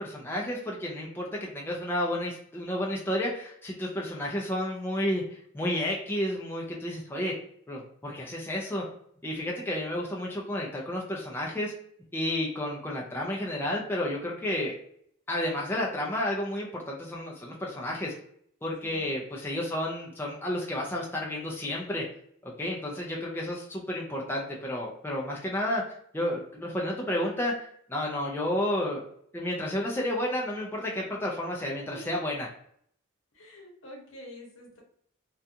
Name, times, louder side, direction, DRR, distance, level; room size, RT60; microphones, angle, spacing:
voice 1, 0.0-5.2 5.5-7.3 7.7-8.8 9.2-11.7 12.1-14.8 15.3-18.1 18.6-22.0 22.4-25.8 26.1-29.0 29.3-32.5, left 1 dB, 10° left, -3 dB, 0.4 m, -31 dB
voice 2, 18.8-19.1 31.9-32.1 33.3-34.8, equal, 70° left, 0 dB, 0.9 m, -47 dB
2.4 x 2.2 x 2.7 m, 0.65 s
head